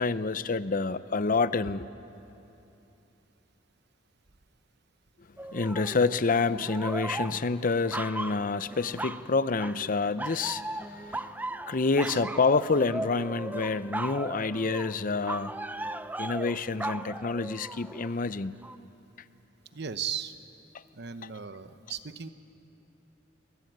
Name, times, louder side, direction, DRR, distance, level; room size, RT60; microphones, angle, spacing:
voice 1, 0.0-1.9 5.5-11.3 11.7-15.5 16.2-18.5, left 4 dB, 45° left, 14 dB, 0.6 m, -28 dB
sound 1, 5.4-6.2 6.5-9.3 9.6-9.9 10.2-18.1 18.6-18.8, right 2 dB, 10° right, 0.6 m, -37 dB
voice 2, 11.9-12.2 19.7-20.3 20.9-22.3, right 7 dB, 60° right, 11 dB, 1.0 m, -37 dB
22.5 x 22.0 x 9.3 m, 2.9 s
head